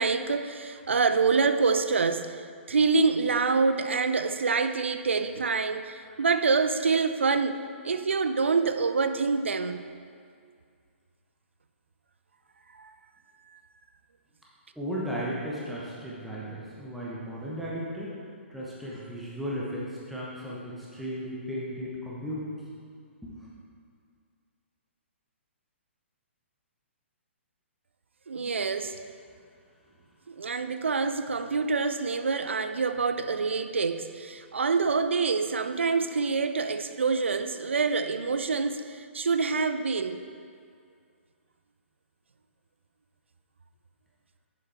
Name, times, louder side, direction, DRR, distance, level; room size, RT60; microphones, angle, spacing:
voice 1, 0.0-9.8 12.7-12.9 28.3-29.0 30.3-40.2, right 4 dB, 65° right, 0.4 m, -26 dB
voice 2, 14.8-18.1 18.5-22.5 23.2-23.5 28.4-28.6, equal, ahead, 1.0 m, -35 dB
8.7 x 7.1 x 3.4 m
figure-of-eight pair, 125°, 7 cm